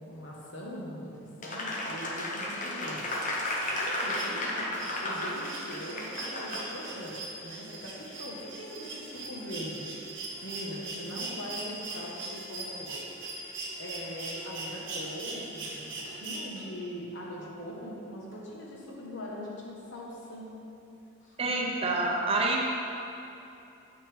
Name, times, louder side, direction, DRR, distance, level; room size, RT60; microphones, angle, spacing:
voice 1, 0.0-3.0 3.6-9.8 10.4-13.0 13.8-20.5 21.2-21.7, equal, 70° left, -3 dB, 1.2 m, -41 dB
Applause, 1.4-7.0, left 1 dB, 40° left, 0.7 m, -33 dB
sound 1, 3.0-16.9 18.3-18.4, right 2 dB, 75° right, 1.0 m, -41 dB
voice 2, 21.4-22.6, right 2 dB, 30° right, -1 dB, 0.6 m, -27 dB
6.8 x 6.1 x 3.5 m, 2.8 s
head